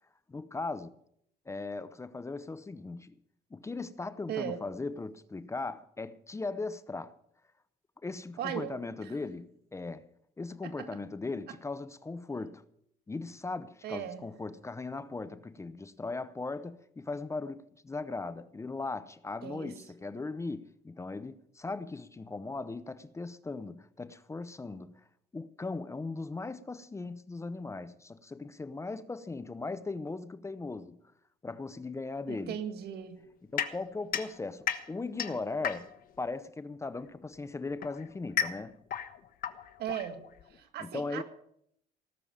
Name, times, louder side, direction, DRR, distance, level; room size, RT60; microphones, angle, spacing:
voice 1, 0.3-0.9 1.5-3.1 3.5-7.1 8.0-10.1 10.4-12.6 13.1-25.0 25.3-31.0 31.4-32.6 33.5-35.9 36.2-38.8 40.8-41.2, left 3 dB, 15° left, 0.7 m, -38 dB
voice 2, 4.3-4.7 8.4-8.7 9.0-9.2 10.6-11.0 11.5-11.6 13.8-14.3 19.4-19.7 32.3-33.2 39.8-40.2 40.5-41.2, right 9 dB, 70° right, 1.9 m, -37 dB
sound 1, 33.6-36.2 37.2-40.6, left 9 dB, 60° left, 1.3 m, -35 dB
18.0 x 7.0 x 8.8 m
cardioid pair, 110°, 17 cm